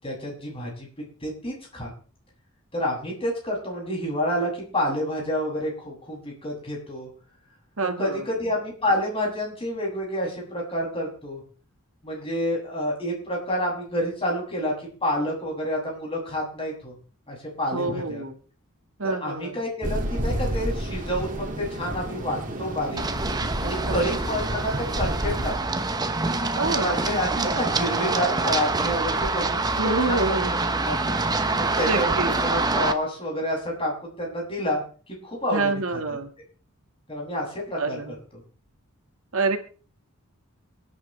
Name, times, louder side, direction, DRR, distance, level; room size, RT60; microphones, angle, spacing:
voice 1, 0.0-0.9 1.2-1.9 2.7-7.1 7.8-11.4 12.0-14.7 15.0-16.9 17.3-18.2 19.0-23.0 23.6-25.8 26.8-30.3 30.8-31.2 31.6-34.8 35.1-35.7 37.1-38.0 38.3-38.4, left 1 dB, 25° left, -2 dB, 7.5 m, -29 dB
voice 2, 7.8-8.3 17.7-18.3 19.0-19.6 23.8-24.2 26.6-27.6 29.8-30.6 31.9-32.3 35.5-36.3 37.8-38.2 39.3-39.6, right 3 dB, 70° right, 5 dB, 2.0 m, -27 dB
sound 1, 19.8-25.5, equal, 35° right, 2.6 m, -30 dB
Run, 23.0-32.9, right 3 dB, 20° right, 1.0 m, -26 dB
29.0 x 9.8 x 3.4 m, 0.40 s
head